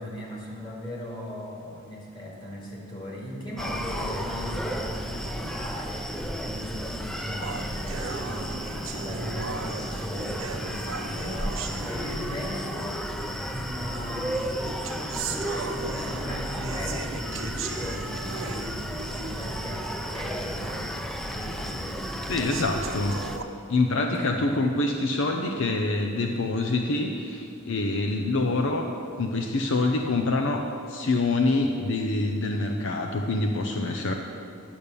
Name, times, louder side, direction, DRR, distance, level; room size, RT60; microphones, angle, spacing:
voice 1, 0.0-6.1 6.4-8.5 8.9-13.1 13.5-18.8 19.1-20.8 21.2-22.1 23.9-24.5, equal, 20° left, -3 dB, 2.3 m, -38 dB
Screaming, 3.6-23.4, equal, ahead, 0.5 m, -33 dB
sound 1, 7.4-12.6 13.4-13.5 14.3-19.6 20.0-20.1 20.6-20.7 21.4-21.5 22.3-23.4, right 4 dB, 65° right, 0.9 m, -38 dB
voice 2, 22.3-23.2 23.7-28.9 29.2-30.6 30.9-34.1, left 2 dB, 65° left, 3 dB, 0.6 m, -26 dB
10.5 x 6.9 x 6.8 m, 2.5 s
head